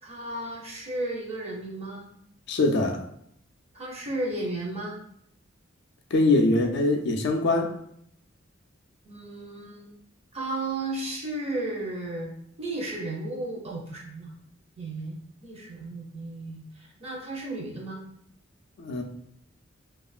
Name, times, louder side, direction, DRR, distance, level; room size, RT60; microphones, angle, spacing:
voice 1, 0.0-2.1 3.7-5.0 9.0-9.9 10.3-12.3 12.6-14.3 14.8-18.0, right 2 dB, 30° right, -2 dB, 0.7 m, -34 dB
voice 2, 2.5-3.1 6.1-7.8 18.8-19.0, left 2 dB, 60° left, 3 dB, 0.4 m, -23 dB
2.9 x 2.4 x 2.3 m, 0.72 s
head